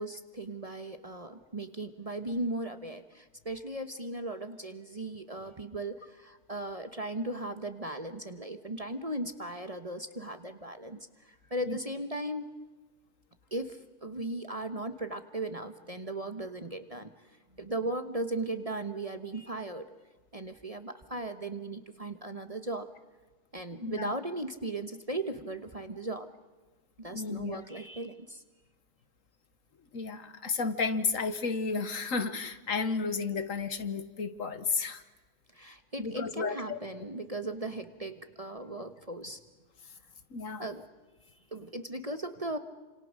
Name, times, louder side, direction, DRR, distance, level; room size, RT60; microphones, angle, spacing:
voice 1, 0.0-12.5 13.5-17.1 17.6-19.9 20.3-22.9 23.5-26.3 27.0-28.4 35.5-39.4 40.6-40.9 41.5-42.6, right 2 dB, 25° right, 9 dB, 1.3 m, -37 dB
voice 2, 23.8-24.1 27.1-27.6 29.9-35.0 36.0-36.8 40.3-40.7, left 4 dB, 60° left, 11 dB, 1.6 m, -32 dB
29.0 x 27.0 x 6.5 m, 1.2 s
omnidirectional pair, 1.6 m